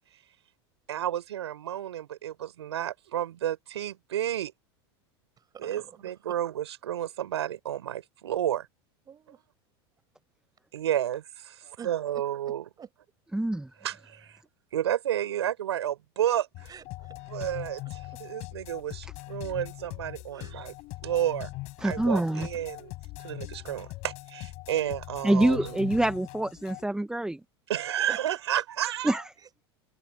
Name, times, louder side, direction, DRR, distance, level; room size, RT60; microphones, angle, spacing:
voice 1, 0.9-4.5 5.6-8.7 10.7-11.5 11.8-12.6 13.8-14.4 14.7-16.7 17.3-20.7 21.0-21.5 21.8-22.9 23.2-25.7 27.7-29.3, right 11 dB, 90° right, 6.6 m, -31 dB
voice 2, 5.4-6.4 9.1-9.4 11.8-12.9 16.7-17.5 20.3-20.6 28.1-29.7, right 7 dB, 30° right, 7.6 m, -48 dB
voice 3, 13.3-13.7 21.8-22.5 25.2-27.4 29.0-29.2, right 1 dB, 5° right, 1.1 m, -25 dB
sound 1, 16.5-26.8, left 21 dB, 55° left, 5.4 m, -41 dB
hypercardioid pair, 105°, 14 cm